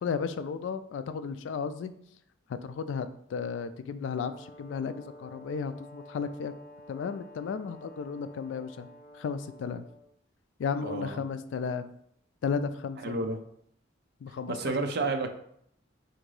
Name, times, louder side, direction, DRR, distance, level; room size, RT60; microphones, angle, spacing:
voice 1, 0.0-1.9 2.6-6.5 6.9-8.9 9.1-9.8 10.6-11.9 12.4-13.2 14.2-14.6 15.0-15.1, left 6 dB, 70° left, 11 dB, 0.3 m, -34 dB
Brass instrument, 4.1-10.1, left 1 dB, 45° left, 0.7 m, -51 dB
voice 2, 10.8-11.2 13.0-13.4 14.5-15.3, right 3 dB, 55° right, 6 dB, 0.5 m, -31 dB
3.8 x 2.6 x 4.7 m, 0.68 s
head